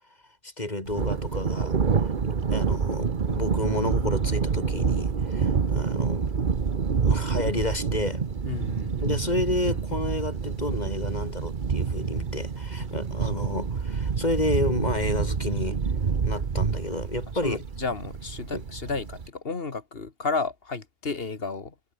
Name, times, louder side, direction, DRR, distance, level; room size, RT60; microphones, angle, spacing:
voice 1, 0.4-2.1 2.5-6.3 7.0-8.3 9.0-15.8 16.2-17.6 18.5-18.6, left 1 dB, 40° left, 4.0 m, -30 dB
Thunder, 0.9-19.3, right 5 dB, 50° right, 1.2 m, -27 dB
voice 2, 8.5-9.1 17.4-21.8, left 4 dB, 60° left, 2.1 m, -32 dB
omnidirectional pair, 1.1 m